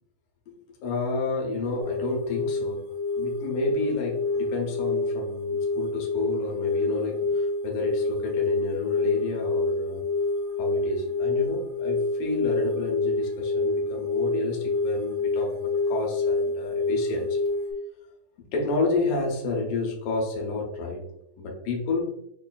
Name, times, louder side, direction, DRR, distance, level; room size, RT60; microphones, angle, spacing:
voice 1, 0.5-2.8 3.2-10.0 10.6-15.5 15.9-17.4 18.5-21.0 21.4-22.1, left 3 dB, 90° left, -1 dB, 2.3 m, -30 dB
sound 1, 1.8-17.7, left 3 dB, 65° left, 1.8 m, -27 dB
6.4 x 2.2 x 2.3 m, 0.78 s
omnidirectional pair, 3.6 m